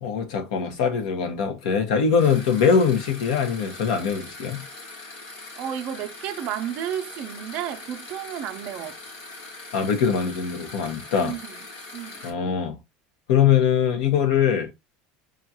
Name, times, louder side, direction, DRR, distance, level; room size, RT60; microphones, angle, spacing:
voice 1, 0.0-4.6 9.7-11.3 12.2-12.8 13.3-14.7, left 7 dB, 85° left, 1.0 m, -22 dB
sound 1, 2.2-12.3, left 2 dB, 40° left, 1.5 m, -41 dB
voice 2, 5.5-9.0 11.2-11.6 11.9-12.2, right 10 dB, 35° right, 0.5 m, -32 dB
5.3 x 2.4 x 2.8 m
cardioid pair, 175°, 4 cm